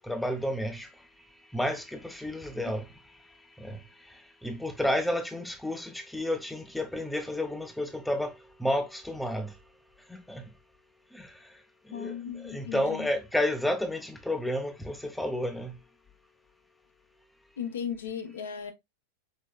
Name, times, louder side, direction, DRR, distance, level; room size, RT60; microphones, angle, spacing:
voice 1, 0.1-0.9 1.5-2.8 3.6-3.8 4.4-8.3 8.6-9.5 10.3-10.4 11.1-11.3 11.9-12.1 12.4-15.7, left 1 dB, 5° left, 0.6 m, -31 dB
voice 2, 11.9-13.1 17.6-18.7, left 7 dB, 65° left, 0.8 m, -36 dB
5.0 x 3.2 x 2.3 m
figure-of-eight pair, 90°, 0 cm